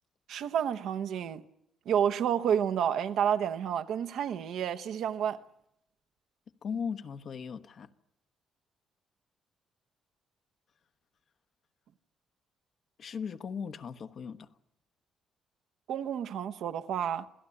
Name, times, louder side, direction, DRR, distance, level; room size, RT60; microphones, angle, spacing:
voice 1, 0.3-1.4 1.8-5.4 15.9-17.3, right 8 dB, 75° right, 1.0 m, -30 dB
voice 2, 6.6-7.9 13.0-14.5, left 6 dB, 55° left, 1.2 m, -37 dB
27.0 x 16.5 x 9.9 m
cardioid pair, 90°, 0 cm